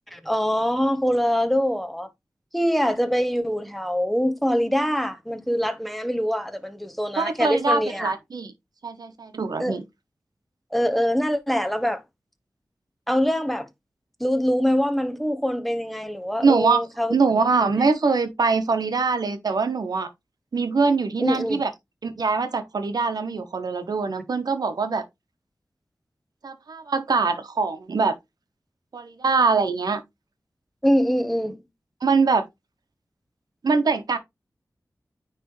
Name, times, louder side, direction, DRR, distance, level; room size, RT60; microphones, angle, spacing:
voice 1, 0.1-2.1 2.5-8.1 9.6-9.8 10.7-12.0 13.1-13.7 14.2-17.1 21.2-21.6 30.8-31.6, equal, ahead, 1.0 m, -24 dB
voice 2, 7.2-8.5 8.8-9.8 16.4-16.8 17.1-20.1 20.5-21.7 22.0-25.1 26.4-28.1 28.9-30.0 32.0-32.4 33.6-34.2, right 4 dB, 80° right, 1.0 m, -23 dB
9.5 x 3.3 x 3.1 m
wide cardioid pair, 70°, 7 cm